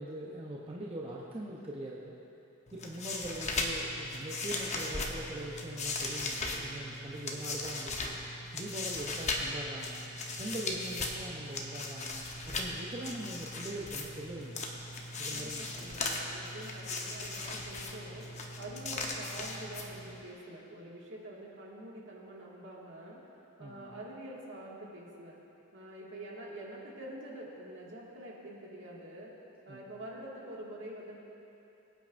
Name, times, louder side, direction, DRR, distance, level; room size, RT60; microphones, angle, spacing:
voice 1, 0.0-2.1 2.7-10.1 10.4-14.7 15.2-15.9 23.6-23.9 29.7-29.9, right 1 dB, 25° right, -4 dB, 0.7 m, -42 dB
sound 1, 2.7-20.3, left 2 dB, 30° left, 0.9 m, -38 dB
voice 2, 15.3-23.3 23.6-25.4 25.7-29.4 29.6-31.2, right 1 dB, 55° right, -4 dB, 2.1 m, -46 dB
22.0 x 9.0 x 2.6 m, 2.8 s
head